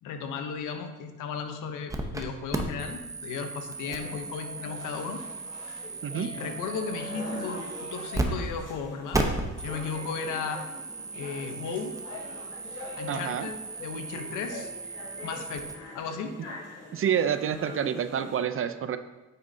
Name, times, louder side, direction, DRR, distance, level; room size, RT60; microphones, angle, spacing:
voice 1, 0.0-5.2 5.7-5.8 6.1-9.2 9.6-10.6 11.1-11.9 13.0-14.7 15.2-15.7 15.9-16.4, left 5 dB, 90° left, 6 dB, 0.9 m, -35 dB
sound 1, 1.9-2.2 2.5-8.3 8.5-8.6 9.1-15.7, right 2 dB, 10° right, 0.8 m, -36 dB
sound 2, 3.8-18.4, left 2 dB, 55° left, 2.4 m, -43 dB
voice 2, 13.1-13.5 16.9-19.0, right 8 dB, 45° right, 11 dB, 0.5 m, -28 dB
9.0 x 6.5 x 2.7 m, 1.1 s
cardioid pair, 90°, 30 cm